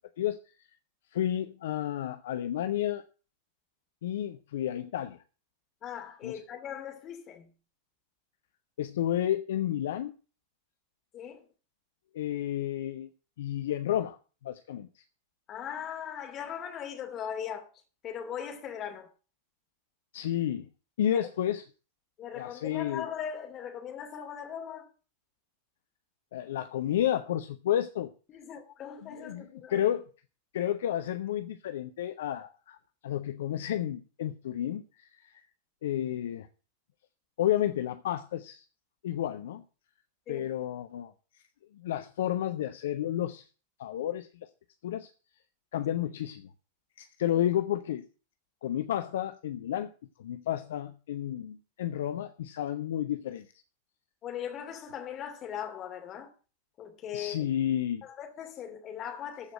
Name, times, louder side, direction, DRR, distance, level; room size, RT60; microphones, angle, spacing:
voice 1, 1.1-3.0 4.0-5.2 6.2-6.4 8.8-10.1 12.1-13.1 13.4-14.2 14.4-15.0 20.1-20.7 21.0-21.6 22.3-23.1 26.3-28.1 29.2-30.1 30.5-32.8 33.0-35.4 35.8-36.5 37.4-38.6 39.0-39.6 40.3-41.1 41.7-43.5 43.8-44.5 44.8-45.1 45.7-46.5 47.0-48.0 48.6-49.9 50.2-53.5 57.1-58.0, left 11 dB, 60° left, 0.7 m, -31 dB
voice 2, 5.8-7.5 11.1-11.5 15.5-17.7 18.0-19.1 21.1-21.2 22.2-24.9 28.3-29.8 40.3-40.5 54.2-56.3 56.8-57.4 58.0-59.5, left 9 dB, 30° left, 2.7 m, -39 dB
14.0 x 4.9 x 7.6 m
figure-of-eight pair, 90°, 0 cm